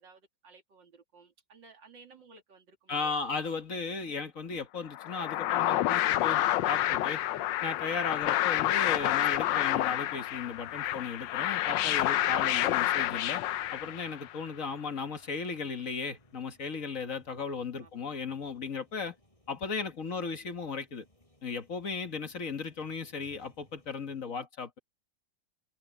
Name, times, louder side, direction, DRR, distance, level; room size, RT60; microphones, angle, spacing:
voice 1, 0.0-3.3 7.4-7.5 8.3-8.4 17.8-18.2, right 4 dB, 90° right, 3.2 m, -57 dB
voice 2, 2.9-7.2 7.6-13.4 13.7-19.2 19.5-21.0 21.4-24.8, left 5 dB, 50° left, 1.8 m, -36 dB
sound 1, 4.9-14.3, left 14 dB, 90° left, 1.4 m, -29 dB
sound 2, 5.7-24.2, left 1 dB, 15° left, 5.8 m, -62 dB
omnidirectional pair, 1.9 m